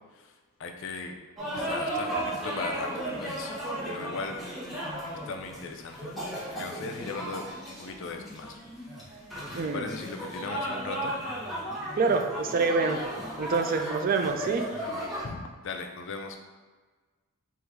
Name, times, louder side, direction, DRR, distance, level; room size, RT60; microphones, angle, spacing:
voice 1, 0.6-1.1 1.5-3.5 3.8-4.3 5.0-6.1 6.5-8.6 9.7-11.2 15.2-16.4, left 4 dB, 65° left, 4 dB, 0.5 m, -38 dB
sound 1, 1.4-15.2, right 1 dB, ahead, 1.0 m, -35 dB
voice 2, 9.5-9.9 12.0-13.0 13.4-14.7, right 4 dB, 40° right, 6 dB, 0.4 m, -26 dB
3.5 x 2.6 x 4.5 m, 1.4 s
head